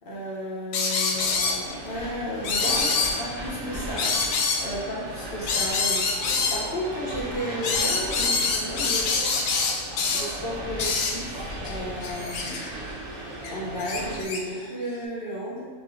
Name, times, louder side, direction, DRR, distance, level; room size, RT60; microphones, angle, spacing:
voice 1, 0.0-6.1 6.5-9.2 10.1-12.7 13.5-15.7, equal, 50° left, -4 dB, 0.8 m, -33 dB
sound 1, 0.7-1.6 2.4-3.2 4.0-4.7 5.5-6.6 7.6-10.3 10.8-11.2 11.6-11.8 12.0-12.7 13.4-14.4, left 4 dB, 75° left, 0.9 m, -25 dB
sound 2, 1.1-14.2, right 1 dB, 60° right, 0.4 m, -39 dB
sound 3, 1.6-14.2, right 1 dB, 75° right, 1.3 m, -39 dB
4.9 x 3.3 x 2.6 m, 1.5 s
omnidirectional pair, 1.5 m